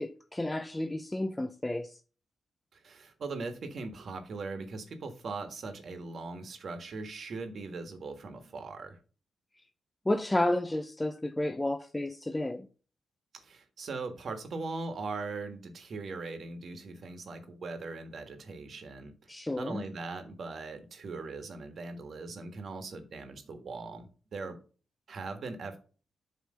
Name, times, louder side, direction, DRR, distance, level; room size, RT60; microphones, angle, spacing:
voice 1, 0.0-2.0 10.1-12.7 19.3-19.8, left 1 dB, 15° left, 0.5 m, -31 dB
voice 2, 2.7-9.0 13.3-19.1 19.6-24.6 25.1-25.8, right 3 dB, 60° right, 1.4 m, -40 dB
7.9 x 3.3 x 6.3 m
cardioid pair, 80°, 0 cm